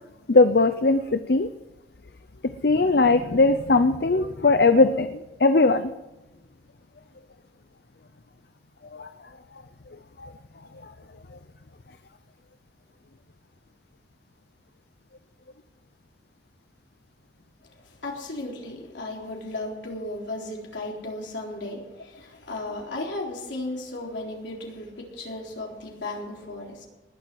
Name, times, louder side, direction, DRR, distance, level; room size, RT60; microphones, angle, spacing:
voice 1, 0.3-1.5 2.6-5.9 8.9-9.1 10.2-10.3, left 3 dB, 60° left, 10 dB, 0.6 m, -20 dB
voice 2, 17.7-26.9, left 2 dB, 85° left, -1 dB, 3.9 m, -35 dB
20.0 x 7.8 x 7.8 m, 1.1 s
head